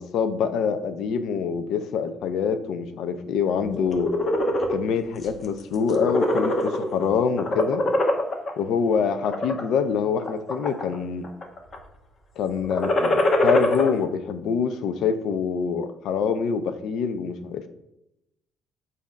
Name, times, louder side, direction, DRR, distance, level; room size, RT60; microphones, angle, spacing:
voice 1, 0.0-4.1 4.7-7.8 8.6-11.3 12.4-17.7, left 6 dB, 70° left, 10 dB, 0.6 m, -25 dB
sound 1, 3.8-4.8 5.2-5.5 5.8-7.0 7.4-8.5 9.1-9.6 10.2-11.0 11.2-11.8 12.6-13.9, left 1 dB, 35° left, 1.0 m, -23 dB
7.4 x 2.8 x 5.1 m, 0.86 s
cardioid pair, 130°, 0 cm